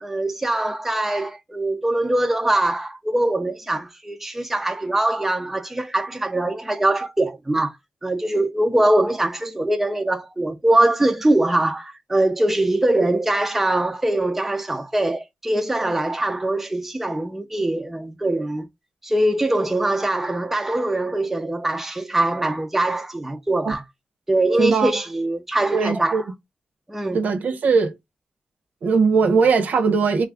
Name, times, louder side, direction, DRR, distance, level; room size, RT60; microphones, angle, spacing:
voice 1, 0.0-7.8 8.0-18.7 19.0-23.8 24.3-26.2 26.9-27.2, right 1 dB, 10° right, 0.4 m, -22 dB
voice 2, 24.6-24.9 25.7-26.2 27.1-27.9 28.8-30.2, right 5 dB, 75° right, 0.8 m, -19 dB
4.0 x 2.5 x 3.4 m
wide cardioid pair, 175°, 3 cm